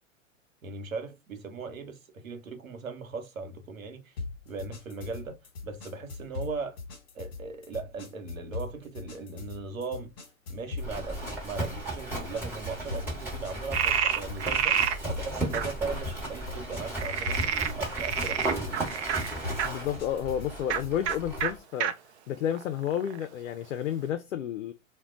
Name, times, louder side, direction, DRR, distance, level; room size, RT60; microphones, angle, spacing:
voice 1, 0.6-4.1 4.5-6.8 7.1-10.1 10.5-18.9, right 4 dB, 85° right, 0.9 m, -38 dB
sound 1, 4.2-21.6, left 4 dB, 50° left, 1.1 m, -41 dB
Livestock farm animals working animals, 10.8-21.6, right 1 dB, 5° right, 1.1 m, -36 dB
Frog, 13.7-15.0 15.5-15.6 16.9-19.7 20.6-20.8 21.1-21.2 21.4-21.5 21.8-21.9 22.5-23.3, right 8 dB, 55° right, 0.6 m, -28 dB
voice 2, 19.6-21.9 22.3-24.7, left 10 dB, 70° left, 0.5 m, -31 dB
2.2 x 2.1 x 3.6 m
figure-of-eight pair, 105°, 40 cm